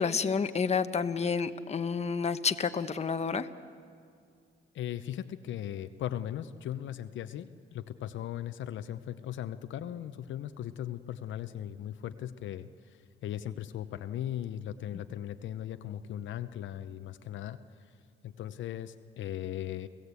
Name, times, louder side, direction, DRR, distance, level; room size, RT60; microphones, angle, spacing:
voice 1, 0.0-3.5, left 5 dB, 35° left, 9 dB, 1.1 m, -29 dB
voice 2, 4.7-17.9 18.2-19.9, left 11 dB, 75° left, 10 dB, 0.8 m, -38 dB
29.5 x 16.0 x 8.3 m, 2.2 s
cardioid pair, 90°, 20 cm